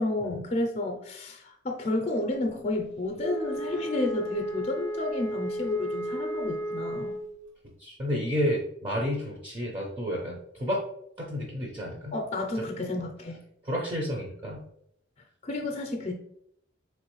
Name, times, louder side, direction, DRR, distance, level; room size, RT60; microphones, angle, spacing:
voice 1, 0.0-7.2 12.1-13.4 15.4-16.1, left 2 dB, 35° left, 2 dB, 0.5 m, -31 dB
Wind instrument woodwind instrument, 3.1-7.3, right 1 dB, 75° right, 1.0 m, -33 dB
voice 2, 7.8-10.8 11.2-12.2 12.6-12.7 13.6-14.6, equal, 25° right, -2 dB, 0.6 m, -31 dB
3.9 x 3.0 x 3.0 m, 0.73 s
head